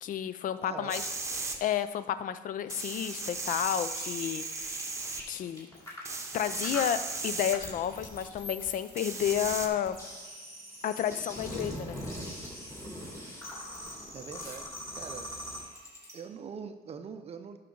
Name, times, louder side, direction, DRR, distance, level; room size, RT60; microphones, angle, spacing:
voice 1, 0.0-1.1 1.6-4.9 5.3-5.7 6.3-10.0 10.8-12.0, left 10 dB, 50° left, 13 dB, 0.5 m, -31 dB
voice 2, 0.6-1.0 14.1-15.3 16.1-17.6, right 6 dB, 35° right, 8 dB, 0.5 m, -43 dB
sound 1, 0.9-1.6 2.7-5.2 6.0-7.5 9.0-9.7, right 3 dB, 15° right, 0.9 m, -36 dB
sound 2, 3.6-16.1, left 1 dB, 20° left, 2.7 m, -42 dB
11.5 x 5.8 x 3.8 m, 1.3 s
cardioid pair, 110°, 17 cm